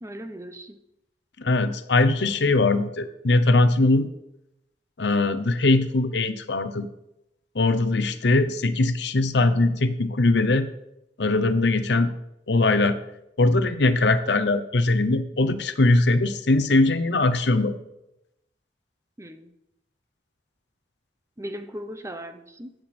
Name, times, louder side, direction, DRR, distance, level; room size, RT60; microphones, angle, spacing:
voice 1, 0.0-0.8 19.2-19.5 21.4-22.7, equal, 15° right, 8 dB, 0.8 m, -38 dB
voice 2, 1.4-4.1 5.0-6.9 7.5-10.7 11.2-12.1 12.5-13.0 13.4-17.8, left 2 dB, 70° left, 11 dB, 0.8 m, -21 dB
15.5 x 7.9 x 4.4 m, 0.86 s
head